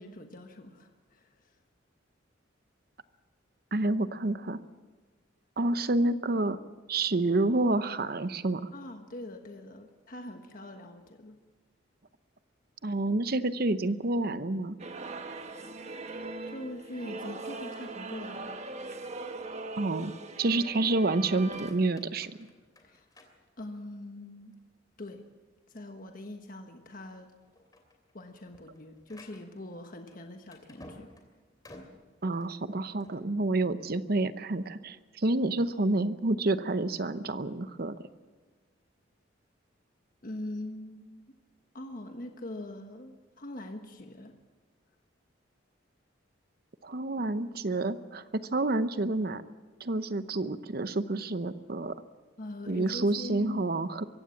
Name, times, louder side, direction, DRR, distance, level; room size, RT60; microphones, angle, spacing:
voice 1, 0.0-1.5 8.7-11.4 16.1-18.6 22.8-23.1 23.6-24.5 25.0-25.3 25.7-27.3 28.1-31.1 40.2-41.2 41.7-44.3 52.4-53.6, left 1 dB, 45° left, 5 dB, 1.4 m, -43 dB
voice 2, 3.7-4.6 5.6-6.6 6.9-8.7 12.8-14.8 19.8-22.4 32.2-38.0 46.8-49.4 49.8-51.9 52.7-54.0, right 2 dB, 50° right, 12 dB, 0.8 m, -29 dB
sound 1, 14.8-21.7, right 3 dB, 35° right, 1.2 m, -40 dB
sound 2, 21.2-24.0 24.5-25.0 25.4-25.5 26.0-26.1 26.8-27.1 27.4-33.3, left 1 dB, 20° left, 2.9 m, -54 dB
23.5 x 15.5 x 7.2 m, 1.3 s
head